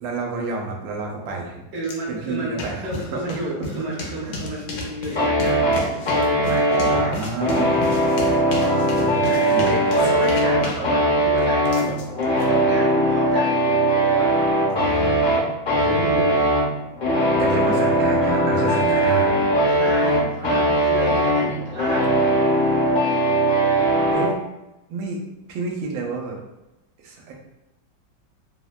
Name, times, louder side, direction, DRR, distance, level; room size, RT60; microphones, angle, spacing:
voice 1, 0.0-1.6 2.1-4.4 6.8-7.8 8.4-9.7 14.7-15.4 15.7-16.3 17.3-19.3 24.1-24.4 24.9-25.2 25.5-26.4 27.0-27.3, right 3 dB, 90° right, 0 dB, 1.3 m, -29 dB
voice 2, 1.7-7.4 9.2-14.3 15.8-16.4 19.7-22.0, right 1 dB, 50° right, -5 dB, 0.8 m, -32 dB
sound 1, 1.8-1.9 2.3-12.4, left 2 dB, 80° left, 1.2 m, -34 dB
sound 2, 5.2-24.3, right 1 dB, 50° left, 0.6 m, -20 dB
3.3 x 2.1 x 2.3 m, 0.96 s
omnidirectional pair, 2.0 m